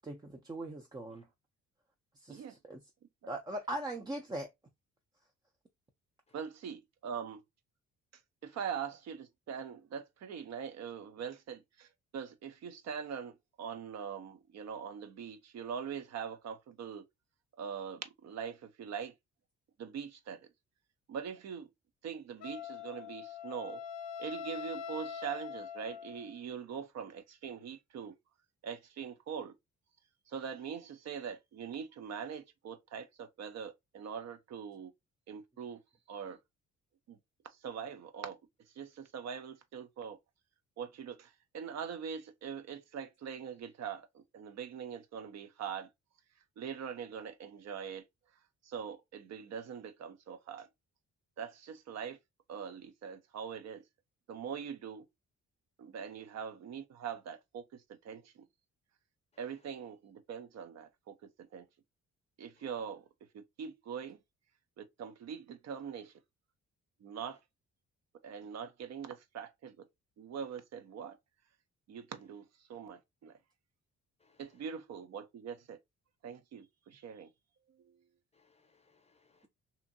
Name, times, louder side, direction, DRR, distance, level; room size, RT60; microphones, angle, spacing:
voice 1, 0.0-1.3 2.2-2.8 3.3-4.5, right 1 dB, 15° right, 0.4 m, -40 dB
voice 2, 6.3-7.4 8.4-17.1 17.6-19.1 19.8-20.5 21.1-21.7 22.0-23.8 24.2-28.1 28.6-29.5 30.3-34.9 35.3-35.8 36.1-36.4 37.1-37.2 37.4-38.4 38.7-40.2 40.8-45.9 46.6-48.0 48.6-50.7 51.4-52.2 52.5-53.8 54.3-55.0 55.8-58.5 59.4-61.7 62.4-63.0 63.3-64.2 64.8-66.1 67.0-67.4 68.2-69.8 70.2-71.2 71.9-73.4 74.4-75.8 76.2-77.3 77.7-78.0, right 7 dB, 60° right, 0.6 m, -42 dB
Wind instrument woodwind instrument, 22.4-26.4, left 7 dB, 60° left, 0.5 m, -43 dB
voice 3, 59.3-59.7 62.6-62.7 67.3-67.4 74.2-74.7 78.3-79.5, left 4 dB, 20° left, 0.7 m, -70 dB
2.8 x 2.5 x 2.5 m
cardioid pair, 90°, 30 cm